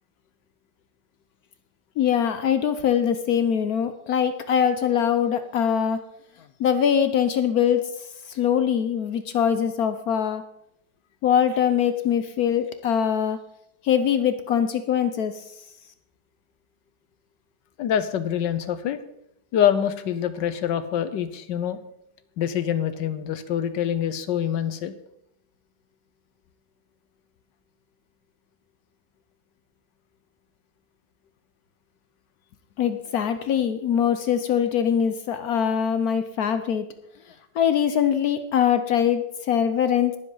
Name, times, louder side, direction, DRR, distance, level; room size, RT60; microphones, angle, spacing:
voice 1, 2.0-6.0 6.6-7.9 8.3-10.4 11.2-13.4 13.8-15.4 32.8-36.9 37.5-40.2, left 8 dB, 65° left, 10 dB, 1.1 m, -22 dB
voice 2, 17.8-19.0 19.5-21.8 22.4-24.9, left 9 dB, 85° left, 12 dB, 1.5 m, -25 dB
20.0 x 7.6 x 3.9 m, 0.77 s
omnidirectional pair, 1.9 m